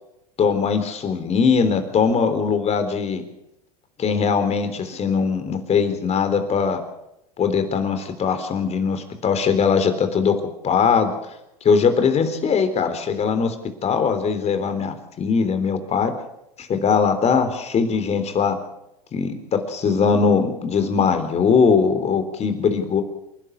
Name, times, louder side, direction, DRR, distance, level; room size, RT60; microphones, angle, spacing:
voice 1, 0.4-3.2 4.0-6.8 7.4-10.4 10.6-11.1 11.6-13.6 13.8-16.1 16.6-18.6 19.1-23.0, left 6 dB, 35° left, 9 dB, 3.7 m, -20 dB
28.0 x 11.5 x 8.2 m, 0.86 s
hypercardioid pair, 95°, 20 cm